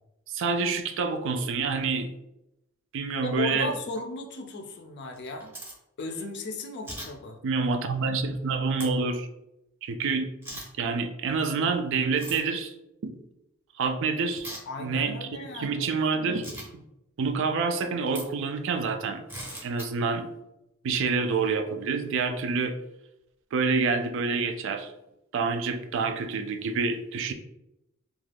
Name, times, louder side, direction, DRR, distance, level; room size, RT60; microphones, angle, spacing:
voice 1, 0.3-2.1 2.9-3.7 7.4-9.3 9.8-10.3 10.8-12.7 13.0-13.1 13.8-14.5 14.8-16.8 17.2-19.2 19.6-20.3 20.8-22.8 23.5-24.9 25.3-27.3, right 4 dB, 60° right, 7 dB, 0.3 m, -27 dB
voice 2, 3.2-5.5 6.0-7.4 14.7-15.9, left 2 dB, 55° left, 4 dB, 0.4 m, -35 dB
sound 1, 5.1-5.7 6.8-7.1 8.8-8.9 10.4-10.7 12.2-12.4 14.4-14.6 16.4-16.7 18.1-18.2 19.3-19.9, right 1 dB, 10° right, 0.7 m, -38 dB
2.4 x 2.3 x 3.3 m, 0.87 s
head